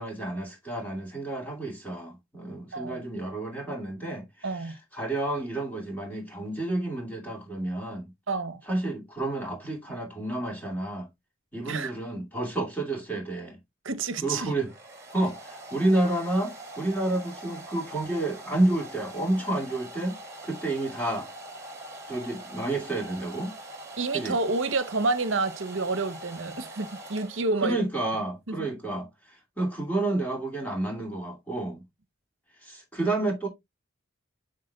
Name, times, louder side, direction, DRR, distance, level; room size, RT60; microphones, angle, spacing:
voice 1, 0.0-8.1 8.7-11.1 11.5-13.6 14.2-14.7 15.1-20.1 20.4-21.3 22.1-23.5 24.1-24.4 27.6-31.8 32.6-33.5, right 2 dB, 10° left, 2.3 m, -30 dB
voice 2, 2.7-3.0 4.4-4.8 8.3-8.6 11.7-11.9 13.8-14.5 24.0-27.8 28.5-28.6, right 3 dB, 65° right, 0.9 m, -29 dB
Domestic sounds home sounds, 14.1-27.8, right 1 dB, 15° right, 2.5 m, -43 dB
7.5 x 7.0 x 2.3 m
head